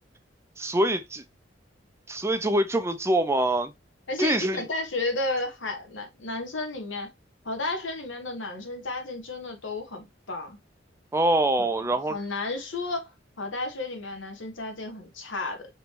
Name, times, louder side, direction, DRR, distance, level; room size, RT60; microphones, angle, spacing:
voice 1, 0.6-1.2 2.1-3.7 4.2-4.6 11.1-12.2, right 1 dB, 15° right, 0.5 m, -24 dB
voice 2, 4.1-7.1 7.4-10.6 12.1-15.7, left 2 dB, 80° left, 1.3 m, -32 dB
5.3 x 3.2 x 2.9 m
head